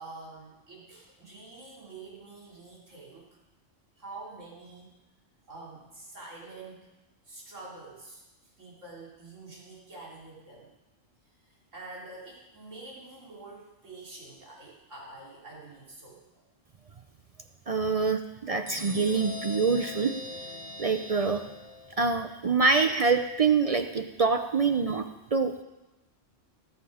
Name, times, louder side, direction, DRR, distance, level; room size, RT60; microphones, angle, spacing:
voice 1, 0.0-3.3 4.0-5.0 5.5-6.9 7.2-8.2 8.6-10.7 11.4-16.4, right 3 dB, 75° right, -4 dB, 3.6 m, -46 dB
voice 2, 17.7-20.5 20.8-21.4 22.0-25.5, right 4 dB, 50° right, 7 dB, 0.4 m, -25 dB
sound 1, 18.7-22.2, left 1 dB, 30° left, 1.7 m, -41 dB
18.5 x 7.4 x 4.9 m, 1.0 s
omnidirectional pair, 1.3 m